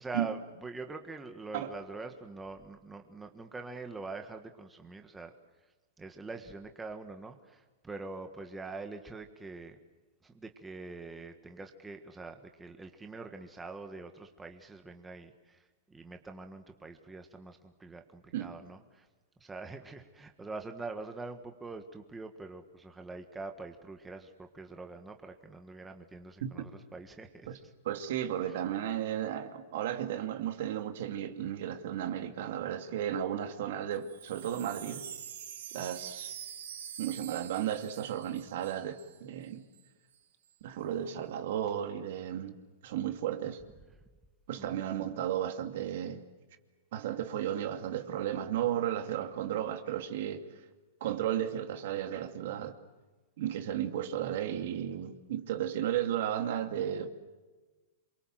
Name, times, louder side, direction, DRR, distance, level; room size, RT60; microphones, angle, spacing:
voice 1, 0.0-5.3 6.0-9.8 10.2-19.1 19.4-27.5 28.5-28.6 44.6-44.9, right 3 dB, 10° right, 1.6 m, -44 dB
voice 2, 27.8-35.1 35.7-36.3 37.0-39.6 40.6-42.5 42.8-43.6 44.5-46.2 46.9-50.6 51.0-52.8 53.4-57.1, right 10 dB, 65° right, 2.5 m, -34 dB
Wind chime, 33.9-39.2 39.4-39.5 39.7-40.2, right 9 dB, 85° right, 3.3 m, -45 dB
28.0 x 23.0 x 7.7 m
supercardioid pair, 145°, 0 cm